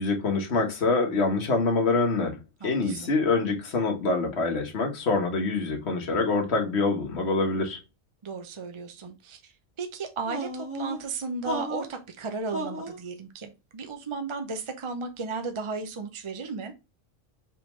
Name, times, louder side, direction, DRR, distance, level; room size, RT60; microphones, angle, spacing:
voice 1, 0.0-2.4 2.6-7.8, left 3 dB, 60° left, 1.4 m, -25 dB
voice 2, 2.6-3.1 8.2-16.7, right 4 dB, 40° right, 0.5 m, -35 dB
sound 1, 10.3-11.0 11.4-12.0 12.5-13.0, right 1 dB, 10° right, 1.5 m, -33 dB
4.9 x 3.6 x 3.0 m
omnidirectional pair, 1.3 m